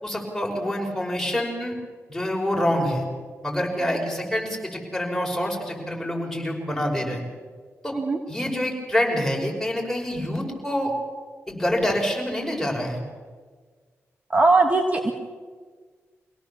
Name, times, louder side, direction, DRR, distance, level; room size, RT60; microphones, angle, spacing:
voice 1, 0.0-1.7 2.1-3.1 3.4-7.2 7.8-8.0 8.3-10.9 11.5-13.0, left 1 dB, 5° left, 0 dB, 5.8 m, -26 dB
voice 2, 14.3-15.1, right 3 dB, 30° right, 4 dB, 1.7 m, -20 dB
24.5 x 17.5 x 7.1 m, 1.6 s
cardioid pair, 85°, 5 cm